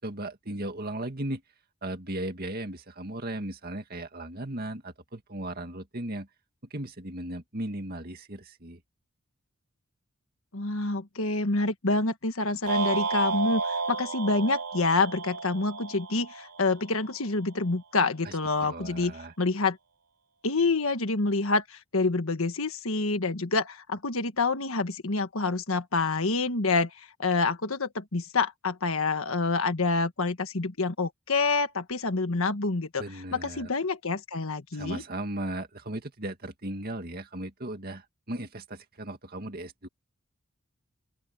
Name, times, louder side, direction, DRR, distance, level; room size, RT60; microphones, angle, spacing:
voice 1, 0.0-1.4 1.8-6.3 6.7-8.8 18.2-19.3 33.0-33.7 34.7-39.9, right 1 dB, 45° right, 2.2 m, -36 dB
voice 2, 10.5-19.8 20.4-33.0 33.3-35.0, left 3 dB, 70° left, 1.5 m, -27 dB
sound 1, 12.7-17.0, right 4 dB, 90° right, 3.5 m, -31 dB
open air
head